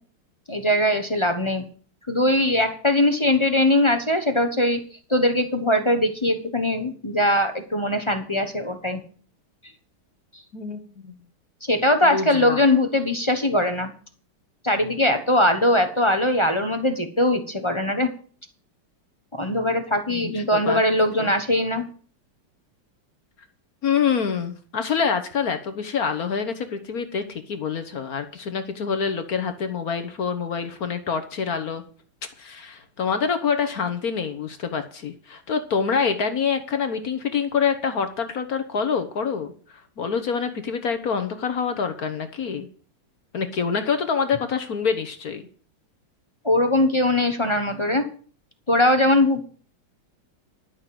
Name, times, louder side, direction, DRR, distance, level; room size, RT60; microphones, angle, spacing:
voice 1, 0.5-1.6 2.1-4.8 5.1-9.0 11.7-13.9 14.6-18.1 19.3-21.8 46.4-48.1 48.7-49.5, left 1 dB, 25° left, 7 dB, 0.6 m, -21 dB
voice 2, 10.5-11.1 12.0-12.6 20.1-20.8 21.2-21.3 23.8-31.8 32.4-39.5 40.0-42.7 43.3-45.4, left 6 dB, 55° left, 9 dB, 1.2 m, -26 dB
11.5 x 6.5 x 7.6 m, 0.44 s
omnidirectional pair, 2.3 m